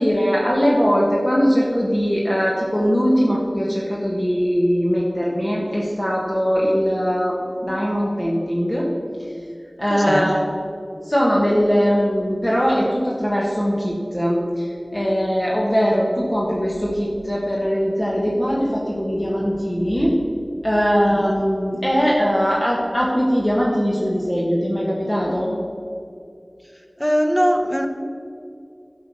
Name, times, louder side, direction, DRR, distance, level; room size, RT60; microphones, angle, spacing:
voice 1, 0.0-8.9 9.8-10.4 11.1-14.7 14.9-20.2 20.6-25.5, equal, 20° left, -4 dB, 1.6 m, -20 dB
voice 2, 9.9-10.3 21.0-21.3 27.0-27.9, equal, 5° left, 5 dB, 1.0 m, -21 dB
12.0 x 5.9 x 6.2 m, 2.4 s
wide cardioid pair, 50°, 0 cm